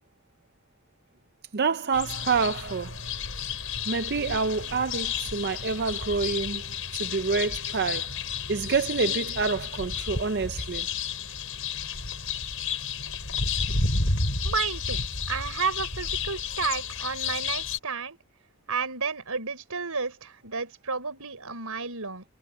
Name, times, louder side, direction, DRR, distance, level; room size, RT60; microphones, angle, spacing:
voice 1, 1.5-3.0 3.9-6.6 6.9-8.1 8.5-10.9, right 4 dB, 45° right, 0.6 m, -27 dB
sound 1, 1.9-17.8, left 5 dB, 60° left, 7.9 m, -31 dB
voice 2, 14.4-15.0 15.3-18.2 18.7-22.2, right 5 dB, 75° right, 4.7 m, -31 dB
head